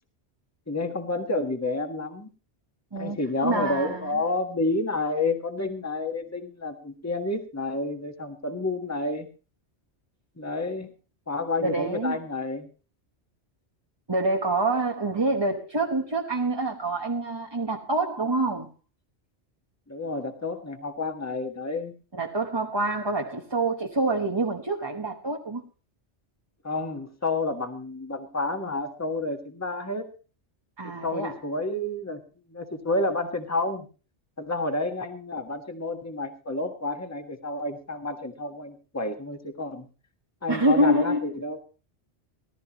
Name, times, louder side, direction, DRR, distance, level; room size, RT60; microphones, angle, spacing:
voice 1, 0.7-2.3 3.0-9.3 10.4-10.9 11.3-12.7 19.9-22.0 26.6-30.1 31.0-32.2 32.5-33.9 34.4-39.8 40.4-41.6, left 2 dB, 15° left, 1.5 m, -30 dB
voice 2, 2.9-4.2 11.6-12.2 14.1-18.7 22.1-25.6 30.8-31.4 40.5-41.2, right 2 dB, 25° right, 1.1 m, -26 dB
19.0 x 13.0 x 3.0 m
omnidirectional pair, 1.2 m